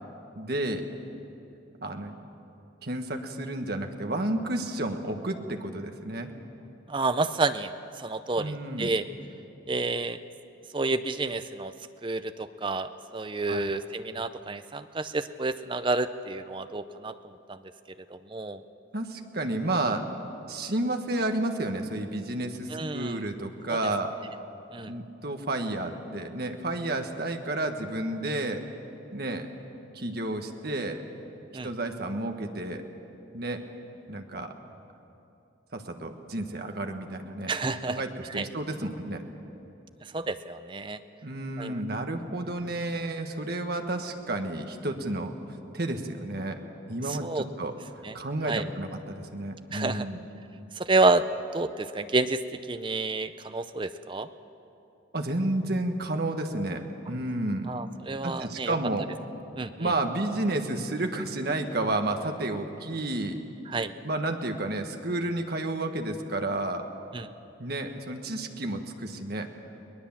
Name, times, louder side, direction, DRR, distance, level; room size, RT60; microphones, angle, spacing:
voice 1, 0.3-0.9 1.8-2.2 2.8-6.3 8.4-8.9 13.5-13.7 18.9-20.0 20.5-24.1 24.8-28.6 29.1-29.5 29.9-31.0 31.6-32.8 33.3-33.6 34.1-34.5 35.7-37.5 37.9-39.2 41.2-45.3 45.7-46.6 46.9-47.7 48.1-50.2 55.1-57.7 58.2-59.1 59.8-63.4 64.0-66.8 67.6-69.5, right 2 dB, 50° right, 4 dB, 1.5 m, -31 dB
voice 2, 6.9-7.7 8.0-9.0 9.7-10.2 10.7-11.7 12.0-17.1 17.5-17.6 18.1-18.6 22.7-23.2 24.7-24.9 31.5-31.7 37.5-38.0 38.3-38.5 40.1-41.0 41.6-41.8 47.1-47.4 48.0-48.1 48.5-48.6 49.7-50.1 50.8-51.3 51.5-52.4 52.7-54.3 57.7-58.8 59.6-59.9 63.7-63.9 67.1-67.3, right 3 dB, 25° right, 11 dB, 0.5 m, -29 dB
22.5 x 19.0 x 7.3 m, 2.9 s
head